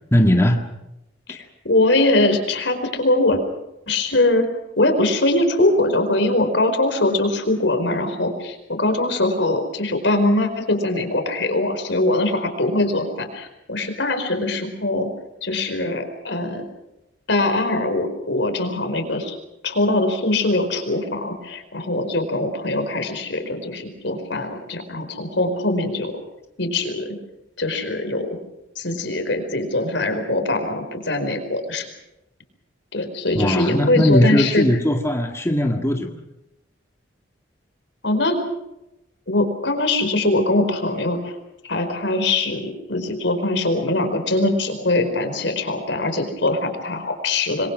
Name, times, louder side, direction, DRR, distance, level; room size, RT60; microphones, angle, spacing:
voice 1, 0.1-0.6 1.3-1.4 33.3-36.2, left 1 dB, 15° left, 3 dB, 1.8 m, -19 dB
voice 2, 1.3-3.4 3.9-4.5 4.8-15.1 15.4-16.6 17.3-19.4 19.6-26.1 26.6-27.2 27.6-28.4 28.7-31.9 32.9-34.6 38.0-38.4 39.3-41.3 41.7-47.7, left 2 dB, 75° left, 6 dB, 4.8 m, -22 dB
27.0 x 22.5 x 6.3 m, 0.90 s
head